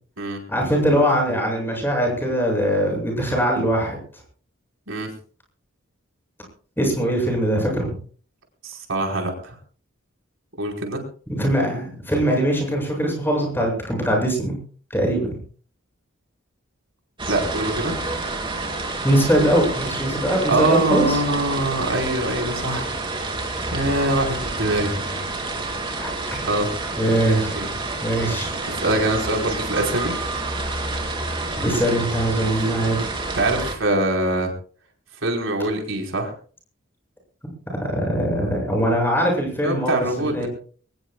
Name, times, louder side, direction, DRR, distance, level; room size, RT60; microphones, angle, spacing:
voice 1, 0.5-4.0 6.8-7.9 11.3-14.6 14.9-15.4 19.0-21.2 26.0-26.1 27.0-27.5 28.0-28.5 31.6-33.1 37.8-40.5, equal, 10° left, 1 dB, 7.8 m, -21 dB
voice 2, 8.6-9.6 10.6-11.0 17.3-17.9 20.3-22.9 23.7-25.0 26.4-26.7 27.3-27.7 28.8-30.1 32.5-32.6 33.3-34.5 35.2-36.3 39.6-40.5, right 2 dB, 65° right, 1 dB, 4.9 m, -23 dB
sound 1, 17.2-33.7, right 2 dB, 25° right, 3.2 m, -29 dB
23.5 x 20.0 x 2.4 m, 0.43 s
head